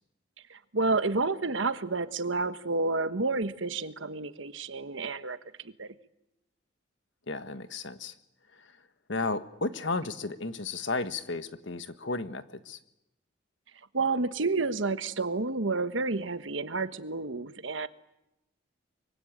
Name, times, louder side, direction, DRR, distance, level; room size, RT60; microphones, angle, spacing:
voice 1, 0.5-5.4 5.8-5.9 13.9-17.9, right 3 dB, 75° right, 12 dB, 1.3 m, -30 dB
voice 2, 7.3-8.1 9.1-12.8, left 3 dB, 70° left, 11 dB, 1.4 m, -33 dB
24.0 x 24.0 x 8.9 m, 0.88 s
head